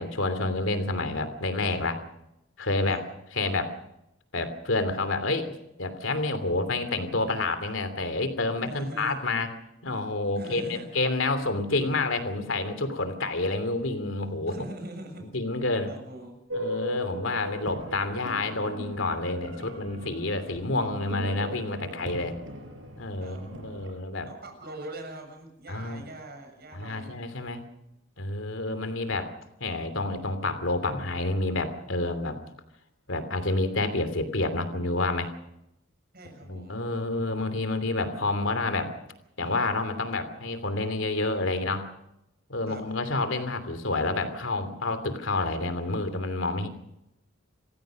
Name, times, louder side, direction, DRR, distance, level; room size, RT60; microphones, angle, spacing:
voice 1, 0.0-2.0 2.6-3.0 3.3-3.7 4.3-9.5 9.8-14.6 15.2-15.9 16.5-22.4 23.0-24.3 25.7-26.0 26.7-27.6 28.2-29.3 29.6-32.4 33.1-35.3 36.4-38.9 39.4-41.8 42.5-46.7, left 2 dB, 75° left, 10 dB, 2.9 m, -29 dB
voice 2, 8.6-9.2 10.4-10.9 14.5-15.3 15.9-16.4 23.2-23.4 24.3-27.2 36.1-36.8 42.7-42.8, right 1 dB, 50° right, 4 dB, 7.0 m, -42 dB
sound 1, 16.5-23.9, equal, 70° right, 5.4 m, -38 dB
27.5 x 15.5 x 6.5 m, 0.85 s
head